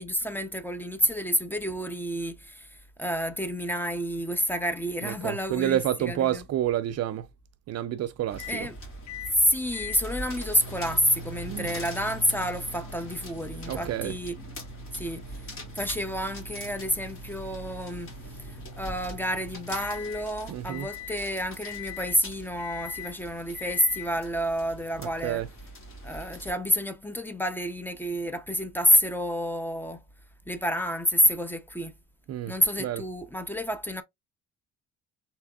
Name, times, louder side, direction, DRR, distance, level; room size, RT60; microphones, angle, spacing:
voice 1, 0.0-6.5 8.5-8.8 9.4-14.4 14.9-15.4 15.7-25.5 26.0-30.0 30.5-31.9 32.5-34.0, equal, 5° left, 0.6 m, -29 dB
voice 2, 5.0-7.3 7.7-8.7 11.5-11.7 13.7-14.2 20.5-20.9 25.0-25.5 32.3-33.0, right 12 dB, 60° right, 0.4 m, -29 dB
sound 1, 8.3-26.5, equal, 45° left, 2.0 m, -43 dB
sound 2, 8.4-8.7 9.1-9.4 9.7-20.3 20.7-21.2 21.6-22.2 22.6-23.1 23.5-24.1, left 4 dB, 65° left, 0.9 m, -43 dB
3.4 x 2.9 x 2.3 m
cardioid pair, 90°, 30 cm